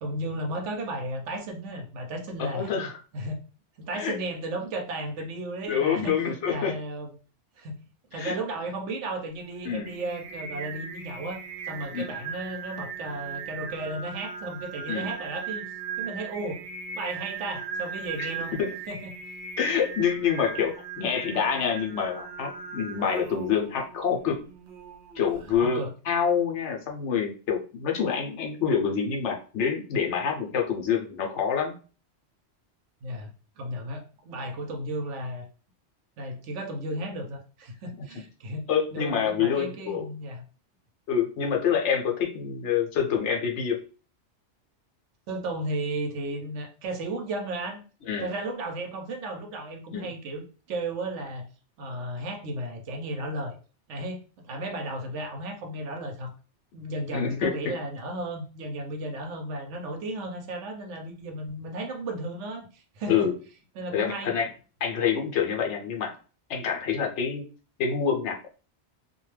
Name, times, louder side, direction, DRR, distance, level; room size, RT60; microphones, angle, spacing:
voice 1, 0.0-2.7 3.1-3.4 3.8-6.2 6.4-7.1 7.6-7.8 8.1-11.4 11.7-15.7 16.0-16.6 16.9-18.5 18.9-19.1 25.5-25.9 33.0-33.3 33.6-35.5 36.2-40.4 45.3-47.8 48.2-51.5 51.8-53.6 53.9-56.3 56.7-63.3 63.8-64.3, right 1 dB, 80° right, 4 dB, 1.0 m, -34 dB
voice 2, 2.4-3.0 3.9-4.1 5.7-6.7 8.1-8.3 9.6-9.9 11.9-12.1 14.9-15.1 18.2-18.3 18.6-18.7 19.6-24.4 25.2-31.7 38.7-40.0 41.1-43.8 48.1-48.3 49.9-50.1 57.1-57.7 63.1-63.3 63.9-64.5 64.8-66.1 66.5-67.4 67.8-68.5, left 7 dB, 75° left, 1 dB, 1.0 m, -27 dB
Singing, 9.3-25.6, right 6 dB, 55° right, 0.7 m, -39 dB
2.4 x 2.2 x 3.1 m, 0.37 s
omnidirectional pair, 1.2 m